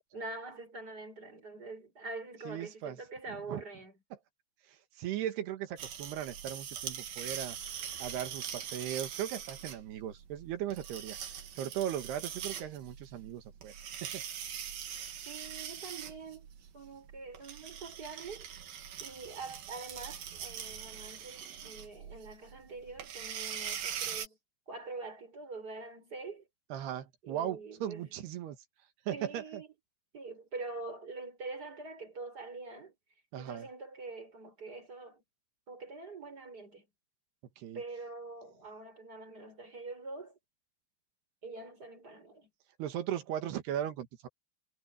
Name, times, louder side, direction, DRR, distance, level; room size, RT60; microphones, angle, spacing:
voice 1, 0.1-3.9 15.3-16.5 16.7-18.5 19.0-24.4 24.7-26.5 27.2-28.1 29.1-29.7 30.1-32.9 33.4-35.2 35.7-36.9 37.7-40.4 41.4-42.5, right 3 dB, 25° right, 6.4 m, -45 dB
voice 2, 2.5-3.0 3.3-3.6 4.1-4.2 4.7-7.6 8.0-11.2 11.6-13.7 14.0-14.2 26.7-28.6 29.1-29.6 33.3-33.7 37.6-37.8 42.8-44.3, right 10 dB, 90° right, 3.8 m, -38 dB
sound 1, 5.8-24.3, right 9 dB, 65° right, 3.7 m, -42 dB
omnidirectional pair, 4.5 m